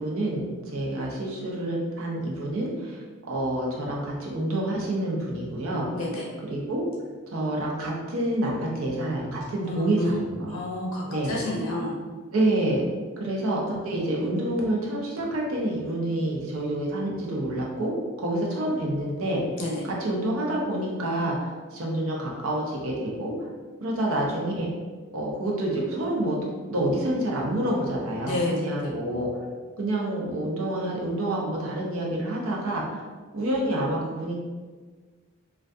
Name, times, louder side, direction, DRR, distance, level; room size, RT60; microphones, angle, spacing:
voice 1, 0.0-5.9 6.4-6.8 7.3-10.6 11.1-11.4 12.3-12.9 13.2-17.9 18.2-23.5 23.8-24.7 25.1-29.3 29.8-33.0 33.3-34.3, right 1 dB, 70° right, -2 dB, 0.6 m, -28 dB
voice 2, 9.6-10.1 10.5-11.9 19.6-19.7 28.2-28.7, left 2 dB, 75° left, -3 dB, 0.5 m, -29 dB
2.3 x 2.2 x 2.5 m, 1.4 s
head